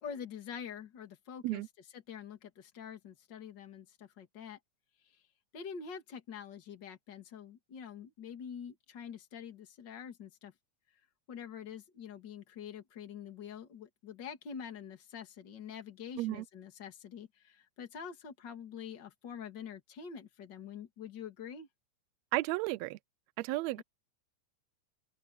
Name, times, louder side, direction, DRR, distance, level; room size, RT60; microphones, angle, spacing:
voice 1, 0.0-4.6 5.1-5.2 5.5-10.5 11.3-21.7 23.8-23.9, left 7 dB, 35° left, 2.6 m, -46 dB
voice 2, 22.3-23.0 23.4-23.8, right 19 dB, 90° right, 1.5 m, -33 dB
open air
omnidirectional pair, 3.7 m